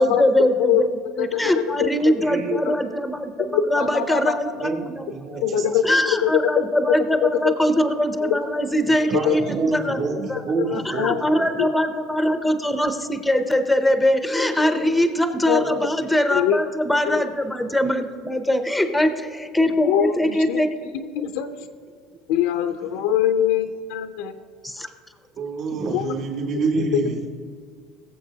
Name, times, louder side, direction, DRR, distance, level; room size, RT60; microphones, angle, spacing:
voice 1, 0.0-5.1 5.7-10.4 10.7-20.9 24.6-24.9 25.8-26.2, left 1 dB, ahead, 7 dB, 0.6 m, -22 dB
voice 2, 1.2-1.9 2.6-2.7 3.5-4.4 5.4-5.8 6.2-6.3 7.2-7.5 8.2-8.4 9.3-9.4 10.7-11.2 11.6-11.7 14.6-14.7 15.5-15.8 16.3-16.6 17.1-17.2 19.8-20.6 20.9-21.5 22.3-24.3 25.9-26.1, left 10 dB, 75° left, 8 dB, 0.5 m, -23 dB
voice 3, 2.2-2.6 4.6-5.7 9.1-11.5 15.6-15.7 22.9-23.1 25.4-27.3, right 3 dB, 45° right, -1 dB, 2.7 m, -27 dB
21.0 x 7.4 x 2.8 m, 2.1 s
cardioid pair, 165°, 0 cm